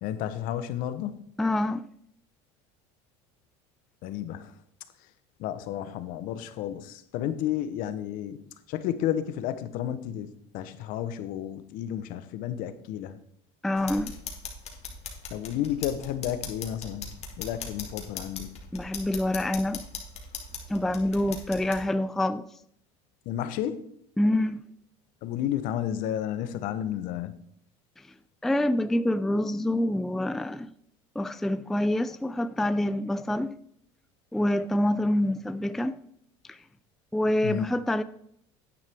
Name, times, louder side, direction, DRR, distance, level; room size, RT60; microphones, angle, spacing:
voice 1, 0.0-1.1 4.0-4.5 5.4-8.4 8.7-10.3 10.5-13.2 15.3-18.5 23.2-23.8 25.2-27.4 37.4-37.7, left 11 dB, 65° left, 1.0 m, -32 dB
voice 2, 1.4-1.9 13.6-14.2 18.7-19.8 20.7-22.4 24.2-24.6 28.4-30.7 31.2-33.6 34.3-36.0 36.5-36.6 37.1-38.0, left 1 dB, ahead, 0.3 m, -26 dB
sound 1, 13.8-21.8, left 5 dB, 45° left, 2.1 m, -40 dB
9.7 x 9.1 x 3.6 m
supercardioid pair, 100°, 16 cm